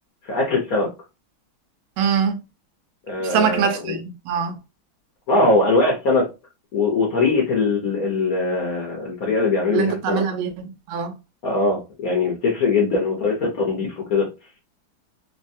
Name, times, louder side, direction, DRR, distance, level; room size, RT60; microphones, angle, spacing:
voice 1, 0.2-0.9 3.1-4.0 5.3-6.3 6.7-10.2 11.4-14.3, left 3 dB, 60° left, 1.0 m, -21 dB
voice 2, 2.0-2.4 3.2-4.6 9.7-11.1, right 6 dB, 80° right, 1.3 m, -23 dB
3.4 x 2.1 x 2.6 m
omnidirectional pair, 2.3 m